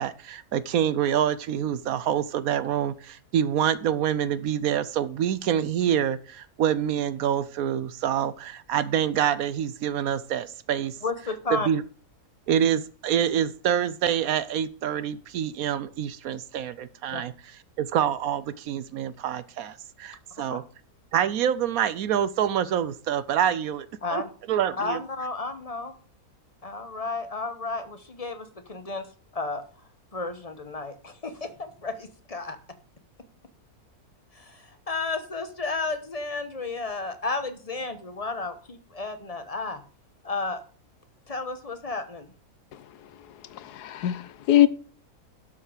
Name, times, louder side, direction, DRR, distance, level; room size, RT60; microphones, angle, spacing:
voice 1, 0.0-11.0 11.5-11.8 12.5-17.3 17.8-20.6 21.1-24.2 24.5-25.0, right 9 dB, 70° right, 1.0 m, -26 dB
voice 2, 11.0-11.7 17.1-17.2 20.5-20.6 24.0-24.3 24.8-25.9 26.6-29.1 29.3-29.6 30.1-32.6 34.3-39.8 40.2-40.6 41.3-42.3, left 3 dB, 25° left, 1.0 m, -32 dB
voice 3, 43.5-44.7, left 13 dB, 80° left, 1.3 m, -22 dB
12.0 x 5.7 x 5.0 m
omnidirectional pair, 1.7 m